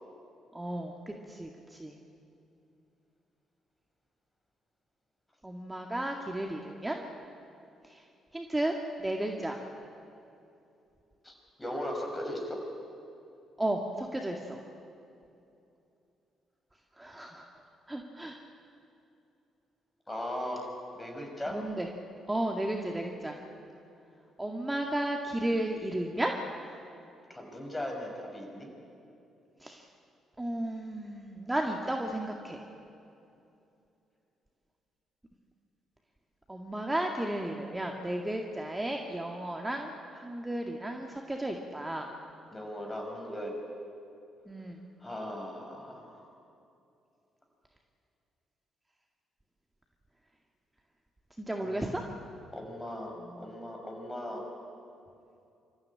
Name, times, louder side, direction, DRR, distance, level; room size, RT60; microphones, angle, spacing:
voice 1, 0.5-1.9 5.4-7.0 7.8-8.0 8.3-8.7 9.0-9.6 13.6-14.6 17.0-17.4 17.9-18.4 21.5-21.9 22.3-23.4 24.4-26.4 29.6-29.8 30.4-32.6 36.5-42.1 44.5-44.8 51.4-52.0 53.2-53.5, right 1 dB, 15° right, 2 dB, 2.1 m, -34 dB
voice 2, 11.6-12.6 20.1-20.7 20.9-21.6 27.3-28.7 42.5-43.5 45.0-46.3 51.6-51.9 52.5-53.1 53.4-54.4, left 1 dB, 20° left, 1 dB, 6.3 m, -38 dB
26.5 x 14.0 x 8.8 m, 2.7 s
figure-of-eight pair, 45°, 0 cm